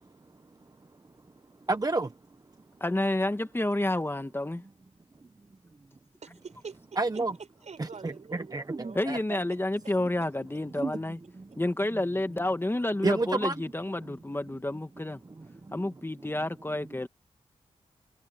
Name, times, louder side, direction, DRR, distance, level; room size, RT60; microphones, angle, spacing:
voice 1, 1.7-2.1 7.0-7.3 7.8-9.4 10.7-10.9 11.4-11.5 13.0-13.5 15.4-15.8, right 3 dB, 30° right, 1.0 m, -30 dB
voice 2, 2.8-4.6 8.9-11.2 11.6-15.2 15.7-17.1, left 1 dB, 20° left, 1.7 m, -29 dB
voice 3, 6.2-9.0, right 5 dB, 70° right, 5.3 m, -46 dB
cardioid pair, 60°, 12 cm